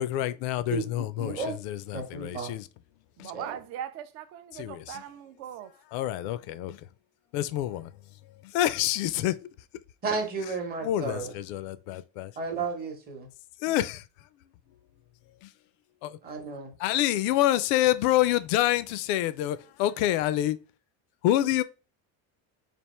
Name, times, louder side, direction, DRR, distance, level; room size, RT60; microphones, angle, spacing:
voice 1, 0.0-2.7 3.2-3.3 4.5-5.0 5.9-6.8 7.3-7.8 8.4-9.3 10.8-12.3 13.6-14.0 15.4-15.5 16.0-16.2 16.8-20.6 21.2-21.6, left 13 dB, 80° left, 0.5 m, -27 dB
voice 2, 1.2-1.6 1.9-2.5 3.3-3.6 10.0-11.3 12.4-13.3 16.2-16.7, right 4 dB, 25° right, 0.8 m, -32 dB
voice 3, 3.2-5.7, right 10 dB, 40° right, 0.4 m, -40 dB
3.5 x 2.5 x 4.2 m
cardioid pair, 180°, 41 cm